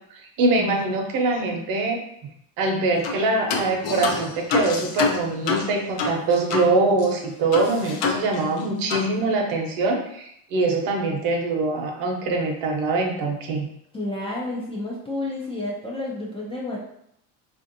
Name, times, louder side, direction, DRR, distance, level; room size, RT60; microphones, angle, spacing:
voice 1, 0.4-2.0 2.6-13.7, right 3 dB, 60° right, 1 dB, 0.8 m, -23 dB
sound 1, 3.0-3.2 3.5-6.7 7.0-7.1 7.5-8.6 8.9-9.1, left 4 dB, 70° left, 0.6 m, -27 dB
voice 2, 13.9-16.8, left 2 dB, 15° left, -5 dB, 0.3 m, -30 dB
3.3 x 2.6 x 2.6 m, 0.74 s
cardioid pair, 140°, 40 cm